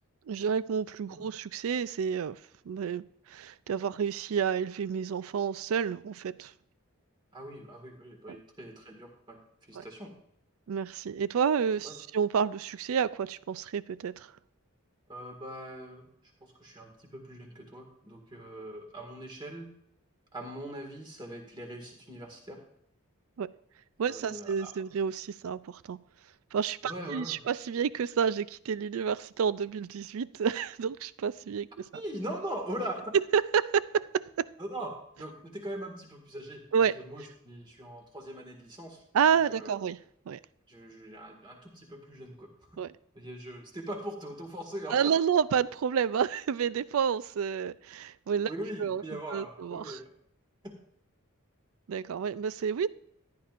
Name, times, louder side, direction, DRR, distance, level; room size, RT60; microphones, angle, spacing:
voice 1, 0.3-2.4 2.7-6.5 8.3-8.4 9.8-9.9 10.7-14.3 23.4-23.5 24.0-26.0 26.5-31.9 33.3-34.5 36.7-37.0 39.1-40.0 40.3-40.4 42.8-42.9 44.9-48.5 48.8-49.0 49.3-50.0 51.9-52.9, right 7 dB, 70° right, 0.4 m, -29 dB
voice 2, 7.3-10.1 11.8-12.0 15.1-16.1 16.4-19.7 20.3-22.6 24.0-24.7 26.9-27.4 31.9-33.0 34.6-39.0 39.5-39.8 40.7-42.5 43.1-45.1 48.5-50.1 50.6-50.7, right 1 dB, 20° right, 1.8 m, -41 dB
14.5 x 10.5 x 2.5 m
head